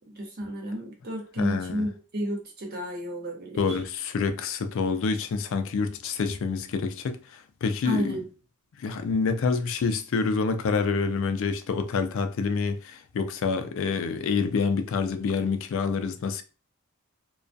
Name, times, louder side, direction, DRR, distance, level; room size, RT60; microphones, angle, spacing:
voice 1, 0.1-3.8 7.8-8.2, equal, 45° right, 0.7 m, -32 dB
voice 2, 1.4-1.9 3.6-8.1 8.8-16.4, left 5 dB, 60° left, 0.3 m, -27 dB
2.3 x 2.2 x 2.5 m
head